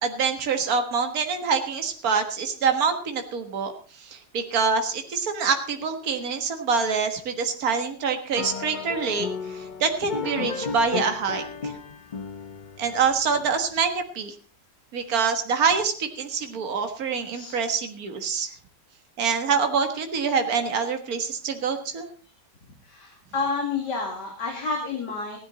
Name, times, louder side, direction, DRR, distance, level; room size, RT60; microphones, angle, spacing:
voice 1, 0.0-3.7 4.0-11.7 12.8-14.3 14.9-18.5 19.2-22.1, right 5 dB, 60° right, 6 dB, 2.0 m, -25 dB
sound 1, 8.3-13.6, left 6 dB, 40° left, 0.6 m, -34 dB
voice 2, 22.8-25.4, left 4 dB, 75° left, 1 dB, 3.0 m, -29 dB
16.0 x 11.5 x 4.0 m, 0.40 s
omnidirectional pair, 1.8 m